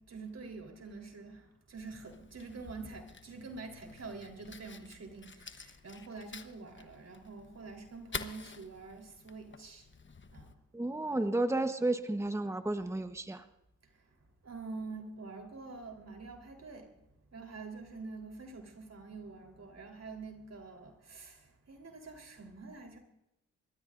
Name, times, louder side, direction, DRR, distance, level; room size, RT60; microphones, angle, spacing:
voice 1, 0.0-9.9 10.3-10.5 14.4-16.9 17.3-21.4 21.7-23.0, right 4 dB, 55° right, 3.9 m, -46 dB
Fire, 1.8-10.5, left 5 dB, 40° left, 1.1 m, -49 dB
voice 2, 10.7-13.4, right 2 dB, 10° right, 1.1 m, -32 dB
27.0 x 13.0 x 2.6 m
cardioid pair, 50°, 31 cm